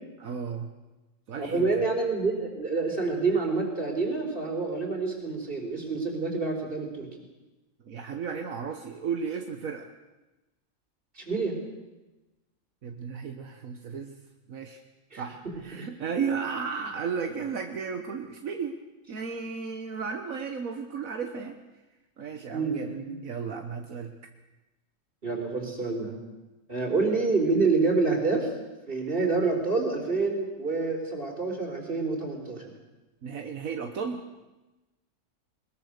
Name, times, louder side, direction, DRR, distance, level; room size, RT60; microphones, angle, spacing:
voice 1, 0.2-0.7 1.3-1.7 7.8-9.9 12.8-14.2 14.5-14.8 15.2-18.8 19.1-21.6 22.2-22.9 23.2-24.1 33.2-34.2, right 6 dB, 80° right, 5 dB, 1.7 m, -34 dB
voice 2, 1.4-7.1 11.2-11.5 15.1-15.2 15.8-15.9 22.5-23.1 25.2-26.2 26.7-28.5 28.9-32.7, right 3 dB, 40° right, 2 dB, 4.4 m, -27 dB
21.5 x 21.0 x 6.7 m, 1.1 s
omnidirectional pair, 1.4 m